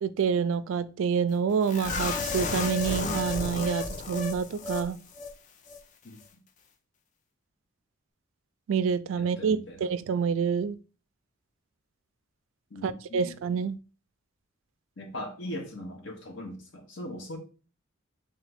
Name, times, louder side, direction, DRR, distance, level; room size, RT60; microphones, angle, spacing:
voice 1, 0.0-5.0 8.7-10.8 12.8-13.8, right 6 dB, 75° right, 15 dB, 0.3 m, -27 dB
sound 1, 1.7-4.9 5.1-5.3 5.7-5.8, left 4 dB, 40° left, 0.4 m, -32 dB
voice 2, 9.2-9.9 12.7-13.4 15.0-17.4, left 1 dB, 65° left, 3 dB, 0.9 m, -40 dB
3.6 x 3.2 x 3.4 m, 0.35 s
head